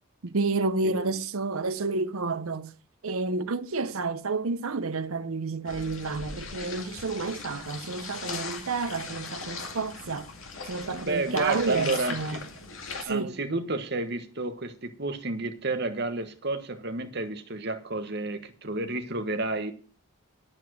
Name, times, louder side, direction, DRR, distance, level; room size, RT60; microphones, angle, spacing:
voice 1, 0.2-2.7 3.0-10.3 10.6-12.4 13.0-13.4, right 3 dB, 80° right, 0.8 m, -30 dB
voice 2, 0.8-1.2 10.9-12.4 13.1-19.7, right 2 dB, 50° right, 1.4 m, -31 dB
sound 1, 5.7-13.1, left 4 dB, 65° left, 2.1 m, -39 dB
10.0 x 8.8 x 6.3 m
head